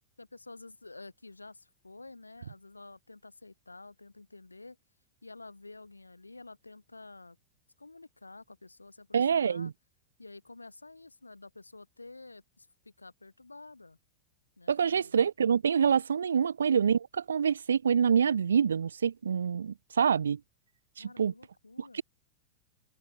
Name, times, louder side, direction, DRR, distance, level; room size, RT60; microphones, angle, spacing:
voice 1, 0.2-4.8 5.2-7.4 7.8-9.7 10.2-14.0 14.6-15.1 16.4-16.5 21.0-22.0, left 3 dB, 80° left, 1.7 m, -50 dB
voice 2, 9.1-9.7 14.7-20.4 21.0-21.3 21.8-22.0, right 7 dB, 70° right, 0.4 m, -26 dB
figure-of-eight pair, 90°, 0 cm